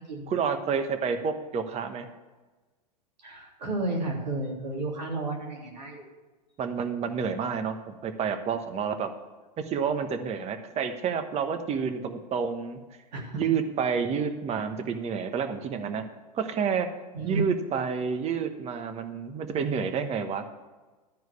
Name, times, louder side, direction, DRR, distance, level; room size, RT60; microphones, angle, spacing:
voice 1, 0.3-2.1 6.6-9.1 9.6-12.8 13.3-16.0 16.3-16.9 17.2-20.4, right 6 dB, 30° right, 8 dB, 1.2 m, -29 dB
voice 2, 3.2-6.1 13.1-13.4 17.1-17.5, right 2 dB, 80° right, -1 dB, 3.1 m, -32 dB
13.0 x 4.7 x 8.3 m, 1.2 s
hypercardioid pair, 100°, 21 cm